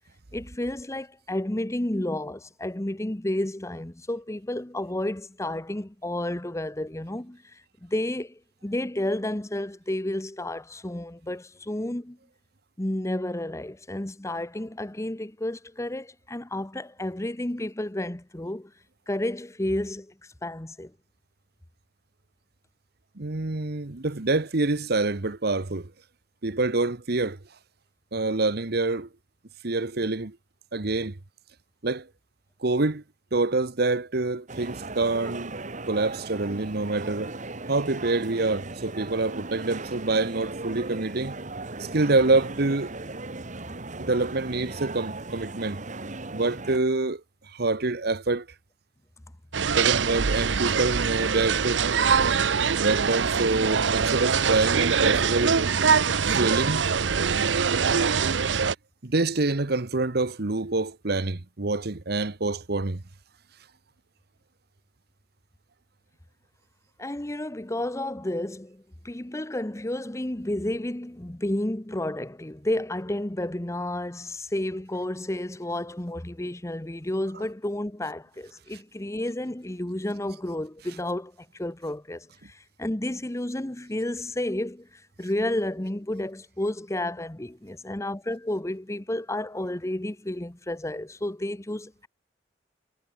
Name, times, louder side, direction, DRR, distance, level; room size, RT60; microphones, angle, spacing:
voice 1, 0.3-12.2 12.8-18.7 19.1-20.1 20.4-20.9 67.0-84.9 85.2-92.1, left 1 dB, 15° left, 1.0 m, -31 dB
voice 2, 23.2-25.9 26.4-27.4 28.1-29.1 29.6-30.4 30.7-31.2 31.8-32.1 32.6-33.0 33.3-35.6 35.9-37.3 37.7-41.4 41.8-43.0 44.0-45.8 46.3-47.2 47.5-48.5 49.8-51.9 52.7-55.6 56.4-56.9 59.0-63.0, right 3 dB, 60° right, 1.2 m, -26 dB
sound 1, 34.5-46.8, right 2 dB, 45° right, 2.0 m, -37 dB
sound 2, 49.5-58.7, right 6 dB, 75° right, 0.8 m, -23 dB
head